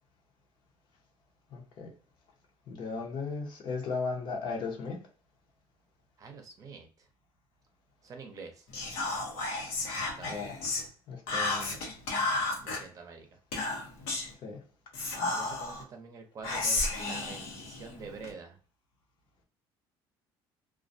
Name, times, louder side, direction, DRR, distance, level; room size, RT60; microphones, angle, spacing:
voice 1, 1.5-1.9 2.7-5.0 10.2-10.6 11.1-11.9 14.4-14.6, left 4 dB, 55° left, 1 dB, 0.8 m, -36 dB
voice 2, 6.2-7.1 8.0-8.7 10.0-10.6 12.6-13.3 15.3-18.6, right 4 dB, 35° right, 4 dB, 0.6 m, -47 dB
Whispering, 8.7-10.9 11.3-12.8 13.5-14.3 14.9-15.8 16.4-18.3, left 2 dB, 90° left, 0.9 m, -32 dB
2.3 x 2.2 x 2.6 m, 0.38 s
cardioid pair, 115°, 10 cm